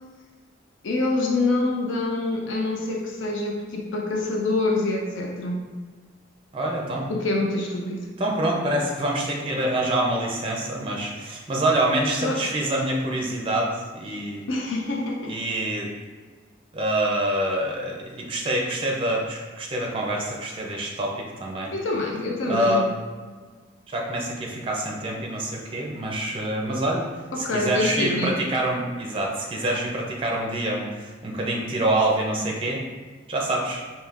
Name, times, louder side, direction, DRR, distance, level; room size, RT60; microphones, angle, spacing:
voice 1, 0.8-5.6 7.1-8.1 12.2-12.4 14.5-15.4 21.7-22.9 27.3-28.4, left 2 dB, 85° left, -1 dB, 0.5 m, -26 dB
voice 2, 6.5-7.1 8.2-14.4 15.3-15.9 16.7-21.7 22.4-22.9 23.9-27.1 27.4-32.8 33.3-33.8, right 1 dB, 30° right, -1 dB, 0.5 m, -26 dB
4.9 x 2.7 x 2.5 m, 1.4 s
head